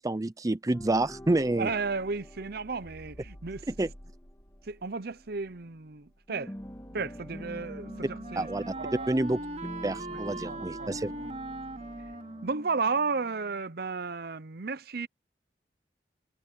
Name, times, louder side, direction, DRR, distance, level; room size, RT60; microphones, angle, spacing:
voice 1, 0.0-1.7 3.7-3.9 8.4-8.7 9.1-9.4 9.8-11.1, right 2 dB, 20° right, 0.5 m, -28 dB
sound 1, 0.7-6.0 6.3-12.6, equal, 15° left, 2.3 m, -47 dB
voice 2, 1.6-3.6 4.7-6.5 6.9-9.1 10.1-11.4 12.4-15.1, right 4 dB, 60° right, 0.8 m, -34 dB
sound 2, 2.8-7.3, equal, 75° left, 7.5 m, -53 dB
Wind instrument woodwind instrument, 6.9-13.7, right 2 dB, 40° right, 2.4 m, -41 dB
head